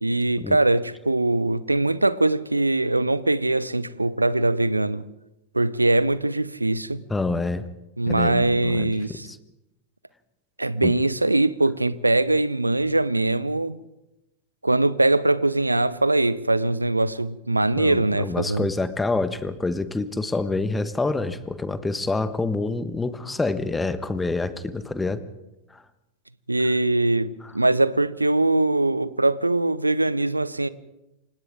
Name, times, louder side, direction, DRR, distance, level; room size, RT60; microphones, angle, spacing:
voice 1, 0.0-5.0 5.5-7.0 8.0-9.3 10.6-13.8 14.6-18.7 26.5-30.7, right 2 dB, 85° right, 0.8 m, -22 dB
voice 2, 7.1-7.7 8.1-9.4 10.8-11.0 17.8-25.2 25.7-25.8 27.4-27.5, left 3 dB, 10° left, 1.4 m, -27 dB
29.0 x 26.0 x 3.7 m
figure-of-eight pair, 90°, 0 cm